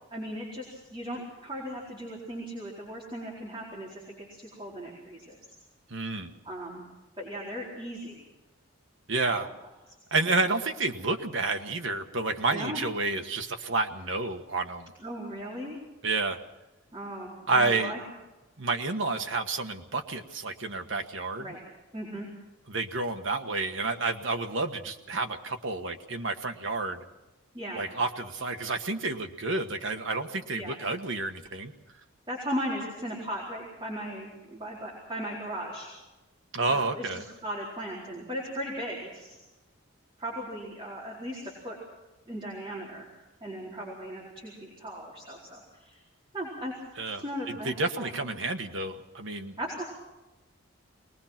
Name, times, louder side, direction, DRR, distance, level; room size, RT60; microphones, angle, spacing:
voice 1, 0.1-5.4 6.4-6.8 7.2-8.2 9.3-9.5 10.3-10.4 12.5-12.8 15.0-15.8 16.9-18.0 21.4-21.6 21.9-22.3 27.5-27.9 30.5-30.8 32.3-35.9 36.7-37.1 37.4-39.4 40.2-41.8 42.3-43.0 43.4-46.0 46.3-46.7 47.0-48.3 49.6-49.8, equal, 25° right, -5 dB, 4.4 m, -37 dB
voice 2, 5.9-6.4 9.1-9.5 10.1-14.9 16.0-16.4 17.5-17.9 18.6-21.5 22.7-27.0 27.8-31.7 36.5-37.2 47.0-49.5, right 3 dB, 60° right, 5 dB, 1.5 m, -30 dB
22.5 x 20.5 x 6.0 m, 1.0 s
head